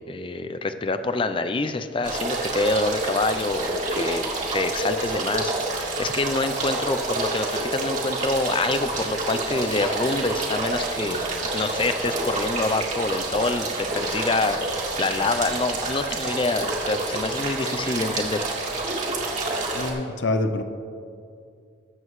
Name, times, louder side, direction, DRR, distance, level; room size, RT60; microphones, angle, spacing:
voice 1, 0.0-4.2 4.5-11.2 11.5-18.5, left 2 dB, 30° left, 10 dB, 0.5 m, -26 dB
sound 1, 2.0-19.9, right 2 dB, 40° right, 2.0 m, -28 dB
voice 2, 19.7-20.6, left 2 dB, 75° left, 8 dB, 0.6 m, -25 dB
20.5 x 7.7 x 3.2 m, 2.3 s
head